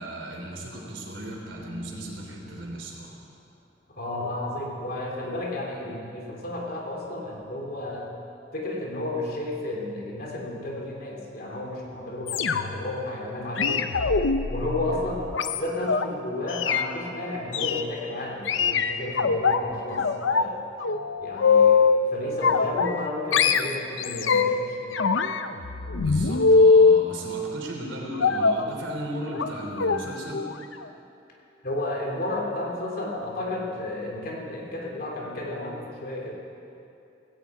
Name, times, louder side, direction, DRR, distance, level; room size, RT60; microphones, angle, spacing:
voice 1, 0.0-3.2 25.9-30.5, right 1 dB, 85° right, -1 dB, 3.2 m, -36 dB
sound 1, 1.3-3.3 5.9-6.1, left 1 dB, 35° left, 1.2 m, -47 dB
voice 2, 3.9-8.2 8.5-13.9 14.5-20.7 21.2-25.0 31.6-36.3, left 2 dB, 50° left, -1 dB, 2.8 m, -32 dB
sound 2, 12.3-12.9 13.6-16.1 16.5-16.9 17.5-17.8 18.5-19.6 20.0-20.5 20.8-22.0 22.4-23.1 23.3-24.6 24.9-27.0 28.2-28.7 29.3-29.5 29.8-30.0 30.3-30.5 30.8-30.9, left 4 dB, 85° left, 0.7 m, -22 dB
17.0 x 16.5 x 4.8 m, 2.7 s
head